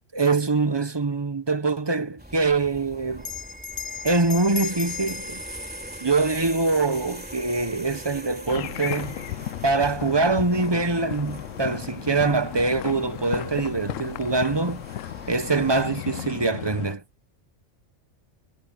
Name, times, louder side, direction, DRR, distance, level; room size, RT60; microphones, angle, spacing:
voice 1, 0.1-3.3 4.0-5.4 6.0-9.1 9.6-14.8 15.3-17.0, right 3 dB, 25° right, 0.9 m, -24 dB
sound 1, 2.2-15.8, equal, 5° right, 3.8 m, -42 dB
Bell, 3.2-8.1, left 5 dB, 40° left, 6.3 m, -38 dB
sound 2, 8.5-17.0, left 13 dB, 85° left, 1.0 m, -35 dB
omnidirectional pair, 1.3 m